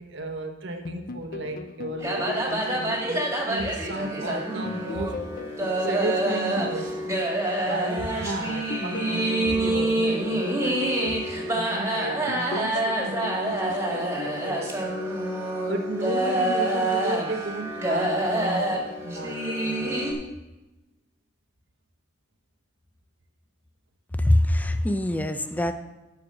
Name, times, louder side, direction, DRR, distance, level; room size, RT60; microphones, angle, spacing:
voice 1, 0.0-5.2 5.8-7.1 7.7-20.2, right 2 dB, 70° right, 5 dB, 1.1 m, -34 dB
sound 1, 0.8-4.2 4.6-7.9 8.5-11.8 12.3-15.5, left 3 dB, 50° left, 0.5 m, -40 dB
sound 2, 2.0-20.1, right 1 dB, 15° right, 2.0 m, -27 dB
voice 2, 24.1-25.7, left 1 dB, 10° left, 9 dB, 0.6 m, -23 dB
13.0 x 4.8 x 6.3 m, 1.0 s
head